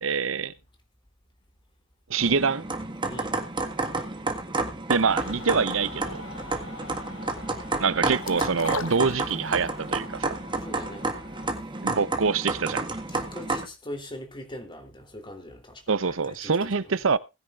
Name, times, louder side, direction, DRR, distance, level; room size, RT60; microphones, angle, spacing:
voice 1, 0.0-0.5 2.1-2.6 4.9-6.3 7.8-10.4 11.8-12.9 15.9-17.2, right 5 dB, 85° right, 0.8 m, -25 dB
sound 1, 2.2-13.7, right 3 dB, 25° right, 1.8 m, -31 dB
voice 2, 3.0-3.4 10.6-11.0 13.1-15.8 16.3-16.8, left 1 dB, 25° left, 3.3 m, -40 dB
Mechanical fan, 5.1-11.5, left 2 dB, 65° left, 6.1 m, -43 dB
sound 2, 8.2-9.8 10.2-10.3, left 5 dB, 85° left, 1.1 m, -36 dB
19.5 x 10.0 x 2.5 m
head